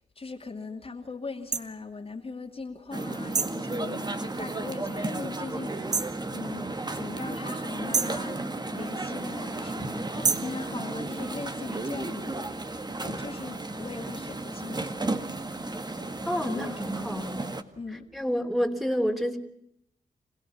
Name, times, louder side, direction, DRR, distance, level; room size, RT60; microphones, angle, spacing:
voice 1, 0.0-8.4 8.7-15.0 16.4-17.0 17.8-18.1, left 4 dB, 40° left, 2 dB, 2.8 m, -40 dB
sound 1, 1.5-1.7 3.3-3.6 5.9-6.2 7.9-8.2 10.2-10.6, right 5 dB, 50° right, 1.5 m, -27 dB
sound 2, 2.9-17.6, right 2 dB, 30° right, 1.9 m, -34 dB
voice 2, 16.2-17.5 18.1-19.4, equal, ahead, 2 dB, 3.3 m, -28 dB
26.5 x 17.0 x 7.2 m, 0.74 s
cardioid pair, 55°, 15 cm